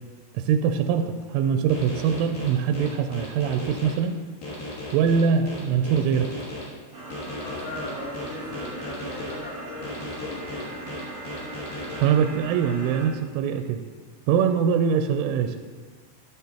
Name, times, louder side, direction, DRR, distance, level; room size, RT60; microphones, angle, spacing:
voice 1, 0.3-4.2 4.9-6.3 12.0-13.8 14.3-15.6, right 7 dB, 85° right, 7 dB, 3.1 m, -23 dB
sound 1, 1.7-3.9 4.4-6.6 7.1-9.3 9.8-12.0, left 1 dB, 55° left, 4.0 m, -36 dB
sound 2, 6.9-13.1, right 2 dB, 35° right, 1.3 m, -39 dB
voice 2, 7.3-10.7, left 2 dB, 75° left, -7 dB, 5.5 m, -37 dB
14.5 x 9.7 x 2.9 m, 1.5 s
omnidirectional pair, 5.6 m